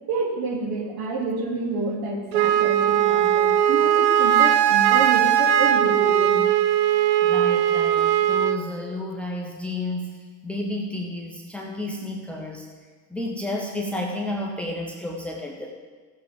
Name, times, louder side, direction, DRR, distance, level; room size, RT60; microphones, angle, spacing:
voice 1, 0.1-6.5, right 3 dB, 45° right, -1 dB, 3.3 m, -29 dB
Wind instrument woodwind instrument, 2.3-8.6, right 10 dB, 80° right, 0.8 m, -19 dB
voice 2, 7.2-10.2 10.4-12.7 13.1-15.7, left 1 dB, ahead, 0 dB, 1.4 m, -31 dB
15.5 x 7.5 x 5.3 m, 1.5 s
figure-of-eight pair, 75°, 49 cm